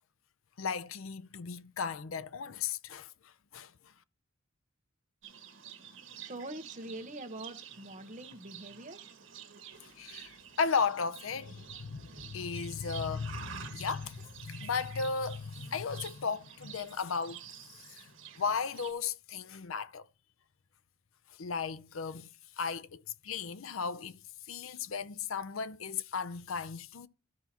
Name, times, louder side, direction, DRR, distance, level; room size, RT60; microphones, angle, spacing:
voice 1, 0.6-3.9 9.8-17.4 17.8-18.1 18.4-20.1 21.3-27.1, left 5 dB, 75° left, 0.6 m, -36 dB
Livestock farm animals working animals, 5.2-18.9, right 8 dB, 65° right, 1.5 m, -49 dB
voice 2, 6.1-9.0, right 2 dB, 35° right, 1.2 m, -44 dB
13.5 x 5.6 x 3.0 m
head